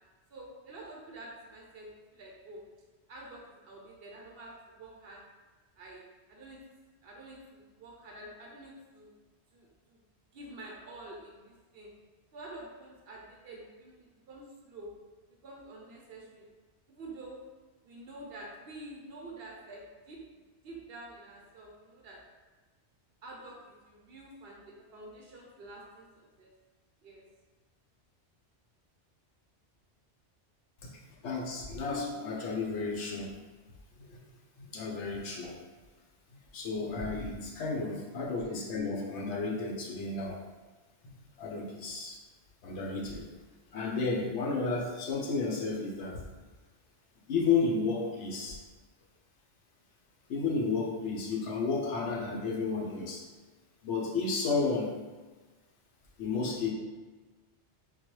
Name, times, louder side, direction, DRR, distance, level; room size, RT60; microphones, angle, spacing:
voice 1, 0.3-2.6 3.1-5.2 5.8-6.6 7.0-9.1 9.5-10.0 10.3-11.9 12.3-14.9 15.3-16.5 16.9-17.4 17.8-20.2 20.6-22.2 23.2-26.5 27.0-27.2, right 2 dB, 65° right, -1 dB, 0.8 m, -48 dB
voice 2, 30.8-33.3 34.1-34.2 34.6-35.6 36.5-40.4 41.4-42.2 42.6-43.3 43.7-46.2 47.3-48.6 50.3-53.2 53.8-55.0 56.2-56.7, left 4 dB, 80° left, -2 dB, 1.0 m, -32 dB
3.9 x 2.2 x 3.0 m, 1.3 s
omnidirectional pair, 1.2 m